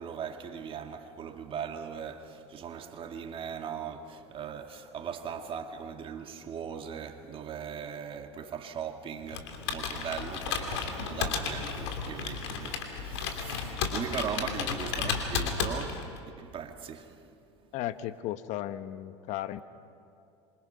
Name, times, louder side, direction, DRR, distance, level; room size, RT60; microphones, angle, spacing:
voice 1, 0.0-17.3, right 7 dB, 40° right, 1.9 m, -39 dB
Computer keyboard, 9.3-16.2, left 6 dB, 75° left, 3.0 m, -33 dB
voice 2, 17.7-19.6, left 13 dB, 55° left, 1.1 m, -35 dB
27.0 x 24.0 x 5.6 m
hypercardioid pair, 85°, 15 cm